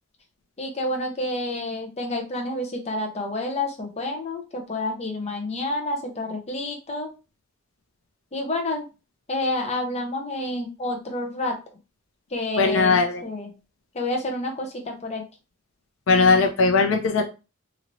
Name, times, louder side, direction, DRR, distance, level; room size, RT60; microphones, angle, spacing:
voice 1, 0.6-7.1 8.3-8.9 9.3-11.6 12.3-13.5 13.9-15.3, left 1 dB, 30° left, 2 dB, 0.7 m, -29 dB
voice 2, 12.6-13.2 16.1-17.2, left 4 dB, 75° left, 4 dB, 0.5 m, -19 dB
3.1 x 2.8 x 2.6 m, 0.29 s
head